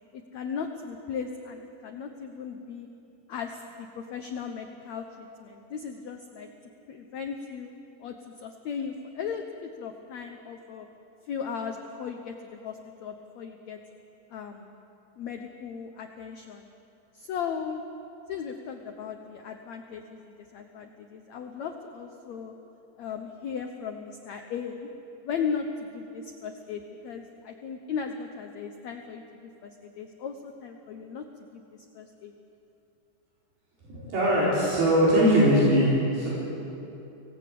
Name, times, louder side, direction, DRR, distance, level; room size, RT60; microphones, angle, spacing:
voice 1, 0.1-2.9 3.3-6.5 6.9-7.7 8.0-10.9 11.3-13.8 14.3-14.7 15.2-16.7 17.1-17.8 18.3-22.5 23.0-24.9 25.2-31.2 31.5-32.3, left 6 dB, 70° left, 4 dB, 1.7 m, -37 dB
voice 2, 33.8-36.3, equal, 80° right, -8 dB, 6.4 m, -21 dB
25.0 x 18.0 x 8.5 m, 3.0 s
omnidirectional pair, 4.3 m